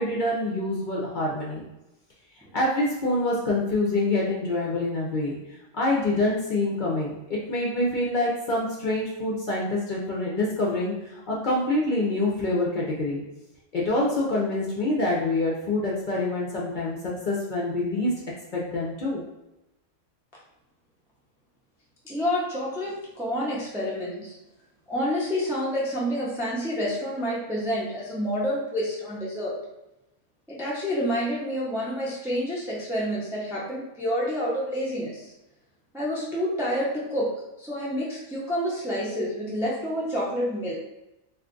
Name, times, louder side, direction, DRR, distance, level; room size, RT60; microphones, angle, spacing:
voice 1, 0.0-1.7 2.5-5.4 5.7-13.2 13.7-17.0 17.3-18.1 18.5-19.2, left 2 dB, 55° left, -4 dB, 0.6 m, -26 dB
voice 2, 22.0-24.3 24.9-29.5 30.5-35.3 35.9-37.3 37.6-40.7, equal, 5° right, -5 dB, 0.4 m, -28 dB
2.5 x 2.4 x 3.6 m, 0.91 s
omnidirectional pair, 1.3 m